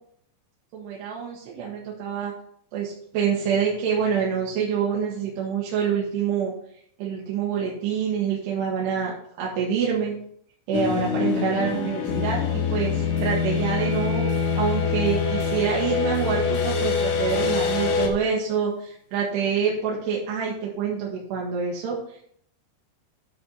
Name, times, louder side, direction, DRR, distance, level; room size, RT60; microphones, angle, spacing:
voice 1, 0.7-2.3 2.7-6.5 7.0-10.1 10.7-12.4 12.7-14.3 14.6-22.2, right 7 dB, 80° right, -4 dB, 3.4 m, -26 dB
sound 1, 10.7-18.1, left 5 dB, 85° left, 3.5 m, -24 dB
10.5 x 4.3 x 5.5 m, 0.66 s
omnidirectional pair, 4.9 m